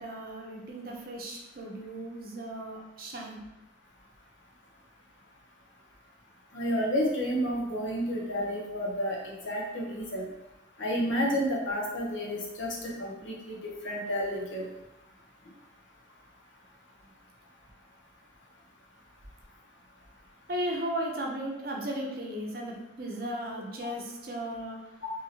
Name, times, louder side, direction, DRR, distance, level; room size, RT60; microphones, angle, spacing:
voice 1, 0.0-3.4 20.5-24.8, right 1 dB, 50° right, 0 dB, 0.6 m, -36 dB
voice 2, 6.5-9.2 9.4-10.3 10.8-13.5 13.8-14.7 25.0-25.1, equal, 90° left, -2 dB, 0.8 m, -30 dB
2.7 x 2.7 x 2.8 m, 0.91 s
head